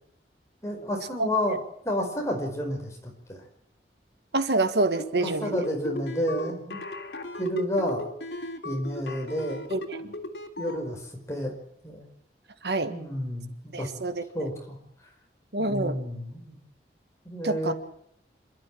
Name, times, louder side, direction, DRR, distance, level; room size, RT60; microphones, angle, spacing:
voice 1, 0.6-1.6 1.8-3.4 5.2-6.8 7.4-8.1 8.6-9.6 10.6-11.5 11.8-12.0 12.9-13.9 14.3-14.8 15.6-16.6 17.2-17.7, equal, 15° left, 2 dB, 4.9 m, -30 dB
voice 2, 4.3-5.5 9.7-10.1 12.6-12.9 13.7-14.5 15.5-16.0 17.4-17.7, right 2 dB, 75° right, 9 dB, 1.6 m, -27 dB
sound 1, 4.9-10.8, left 2 dB, 75° left, 3.1 m, -36 dB
27.0 x 12.5 x 9.1 m, 0.70 s
head